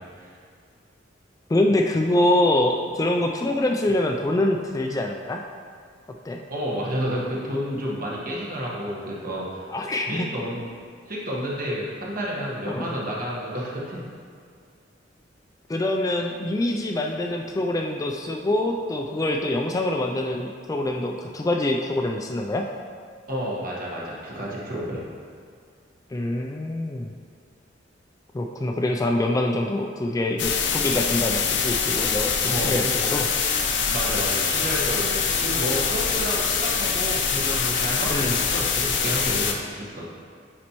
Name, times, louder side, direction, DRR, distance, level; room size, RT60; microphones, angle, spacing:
voice 1, 1.5-5.4 6.2-6.4 9.7-10.3 12.7-12.9 15.7-22.6 26.1-27.1 28.3-33.3 38.1-38.3, left 1 dB, 20° left, 2 dB, 0.3 m, -25 dB
voice 2, 6.5-9.7 10.1-10.6 11.1-14.1 23.3-25.0 32.5-32.7 33.9-40.0, equal, 50° right, -4 dB, 1.3 m, -30 dB
sound 1, 30.4-39.5, left 6 dB, 70° left, 0.6 m, -24 dB
9.4 x 4.2 x 3.0 m, 2.2 s
head